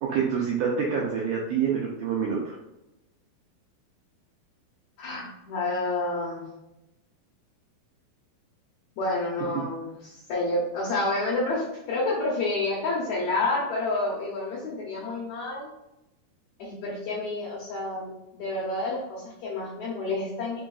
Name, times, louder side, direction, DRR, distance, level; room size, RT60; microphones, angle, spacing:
voice 1, 0.0-2.6, right 6 dB, 85° right, -2 dB, 1.8 m, -27 dB
voice 2, 5.0-6.5 9.0-15.7 16.6-20.6, left 2 dB, 75° left, -5 dB, 1.7 m, -29 dB
5.0 x 3.9 x 2.3 m, 0.92 s
omnidirectional pair, 4.3 m